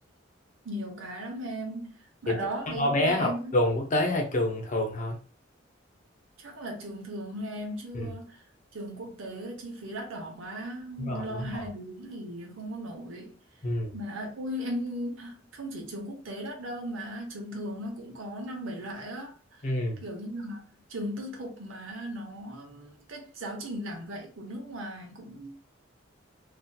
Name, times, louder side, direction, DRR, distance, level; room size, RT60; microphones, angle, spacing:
voice 1, 0.6-3.6 6.4-8.4 8.7-13.3 13.9-19.7 20.0-20.6 20.9-25.5, equal, 90° right, 0.9 m, -37 dB
voice 2, 2.8-5.2 7.9-8.1 11.0-11.6 13.6-13.9 19.6-20.0, left 1 dB, 40° left, 0.7 m, -27 dB
2.7 x 2.4 x 2.3 m
head